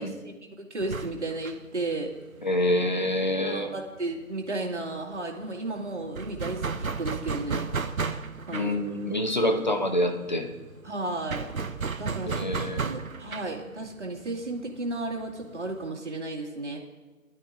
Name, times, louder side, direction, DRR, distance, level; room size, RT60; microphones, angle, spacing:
voice 1, 0.0-2.1 3.4-7.7 8.5-8.8 10.8-11.5 12.0-16.8, right 2 dB, 50° right, -1 dB, 2.3 m, -34 dB
sound 1, 0.8-4.2 4.5-4.6 4.9-15.9, right 5 dB, 65° right, 0.8 m, -35 dB
voice 2, 2.4-3.7 8.5-10.5 12.3-12.8 13.3-13.4, left 1 dB, 30° left, 6 dB, 1.0 m, -26 dB
20.0 x 12.0 x 2.6 m, 1.3 s
figure-of-eight pair, 165°, 45 cm